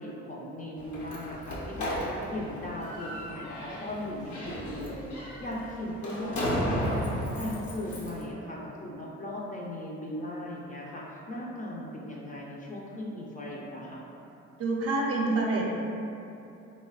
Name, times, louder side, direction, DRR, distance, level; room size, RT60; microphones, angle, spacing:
voice 1, 0.0-14.0, left 1 dB, 30° left, -4 dB, 0.4 m, -38 dB
Slam, 0.8-8.2, equal, 75° left, 0.7 m, -34 dB
voice 2, 14.6-15.7, right 2 dB, 50° right, -2 dB, 0.5 m, -27 dB
3.2 x 2.1 x 2.3 m, 2.8 s
cardioid pair, 90°, 30 cm